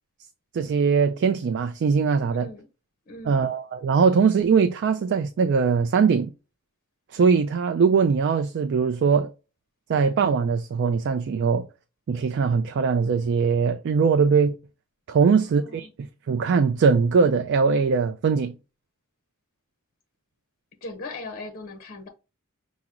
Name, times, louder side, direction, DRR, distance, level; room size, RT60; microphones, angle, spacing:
voice 1, 0.5-2.5 3.3-6.3 7.1-9.3 9.9-11.7 12.1-14.6 15.1-18.5, right 5 dB, 55° right, 0.3 m, -21 dB
voice 2, 2.3-2.7 3.1-3.5 15.2-15.9 20.8-22.1, left 2 dB, 40° left, 0.7 m, -39 dB
5.8 x 2.0 x 3.7 m
head